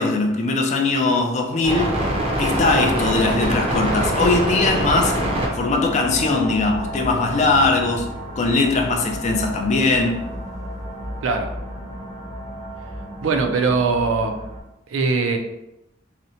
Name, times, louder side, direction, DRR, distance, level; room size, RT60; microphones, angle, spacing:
voice 1, 0.0-1.9 2.4-5.2 5.5-10.2, left 3 dB, 35° left, 0.4 m, -20 dB
sound 1, 1.6-14.6, right 1 dB, 30° right, 0.5 m, -27 dB
voice 2, 13.2-14.3 14.9-15.4, right 4 dB, 85° right, 0.4 m, -21 dB
2.8 x 2.0 x 2.6 m
head